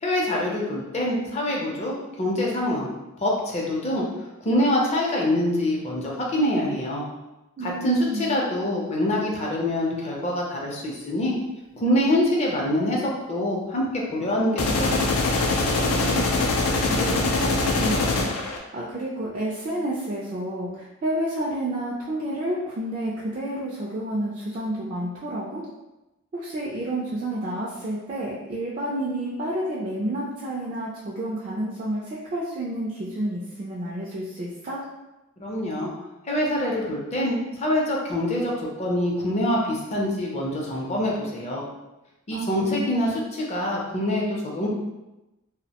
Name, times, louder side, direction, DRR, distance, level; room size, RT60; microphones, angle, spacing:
voice 1, 0.0-2.9 3.2-4.0 4.4-7.0 7.6-11.3 11.7-13.0 13.3-15.1 35.4-35.9 36.3-41.6 42.3-44.7, left 1 dB, 30° left, -3 dB, 0.5 m, -25 dB
voice 2, 7.6-8.4 15.8-25.6 26.3-34.8 42.3-42.9, right 1 dB, 35° right, -5 dB, 0.3 m, -30 dB
sound 1, 14.6-18.6, left 3 dB, 90° left, 0.4 m, -23 dB
2.5 x 2.0 x 2.8 m, 1.0 s
head